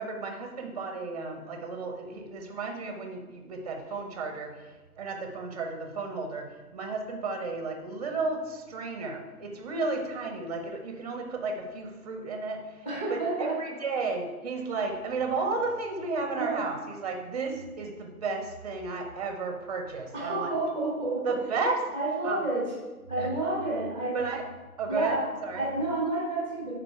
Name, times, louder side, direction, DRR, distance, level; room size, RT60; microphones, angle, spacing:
voice 1, 0.0-4.5 5.0-12.6 13.1-20.5 21.2-21.9 22.2-22.4 23.2-23.3 24.1-24.4 24.8-25.7, right 3 dB, 25° right, 4 dB, 0.8 m, -33 dB
voice 2, 12.8-13.6 16.4-16.6 20.1-21.3 21.9-22.7 23.1-24.2 24.9-26.7, right 2 dB, 10° left, -4 dB, 1.2 m, -30 dB
9.7 x 3.9 x 4.5 m, 1.2 s
figure-of-eight pair, 150°, 46 cm